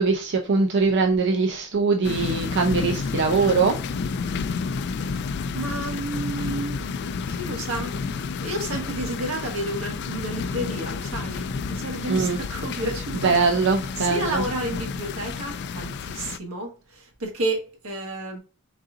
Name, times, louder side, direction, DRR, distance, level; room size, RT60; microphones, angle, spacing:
voice 1, 0.0-3.8 12.1-12.4 13.2-14.4, right 4 dB, 55° right, 0.5 m, -22 dB
sound 1, 2.0-16.4, left 5 dB, 55° left, 0.3 m, -30 dB
voice 2, 5.5-13.4 14.0-18.4, right 1 dB, 80° right, 1.4 m, -31 dB
4.1 x 3.8 x 2.4 m
head